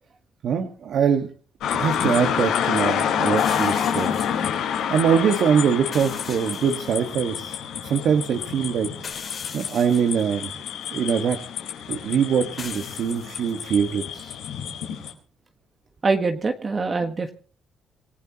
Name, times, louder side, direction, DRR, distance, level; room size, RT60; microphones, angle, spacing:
voice 1, 0.4-1.3 1.7-4.1 4.5-8.9 9.2-10.5 10.9-11.4 11.9-14.4, right 7 dB, 70° right, 6 dB, 1.6 m, -23 dB
sound 1, 1.6-15.1, left 8 dB, 90° left, 4.4 m, -28 dB
sound 2, 3.4-4.5 5.9-7.0 7.4-7.5 9.0-10.2 12.6-13.6, left 5 dB, 45° left, 3.4 m, -40 dB
voice 2, 16.0-17.3, right 4 dB, 35° right, 5 dB, 1.5 m, -24 dB
26.5 x 16.0 x 3.0 m, 0.40 s
cardioid pair, 90°, 0 cm